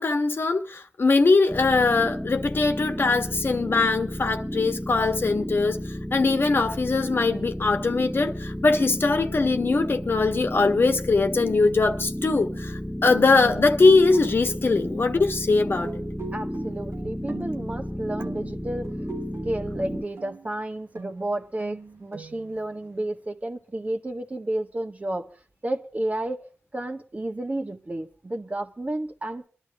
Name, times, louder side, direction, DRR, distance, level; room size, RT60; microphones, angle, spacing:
voice 1, 0.0-5.8 6.1-15.9, left 3 dB, 55° left, 1.4 m, -21 dB
sound 1, 1.5-20.0, equal, ahead, 1.4 m, -33 dB
sound 2, 12.5-12.8 13.1-14.8 15.8-17.9 18.2-19.7 20.2-20.6 20.9-22.9, right 3 dB, 85° right, 2.3 m, -40 dB
voice 2, 16.3-18.9 19.4-25.3 25.6-29.5, right 1 dB, 35° right, 1.6 m, -31 dB
21.5 x 12.0 x 3.6 m
cardioid pair, 65°, 4 cm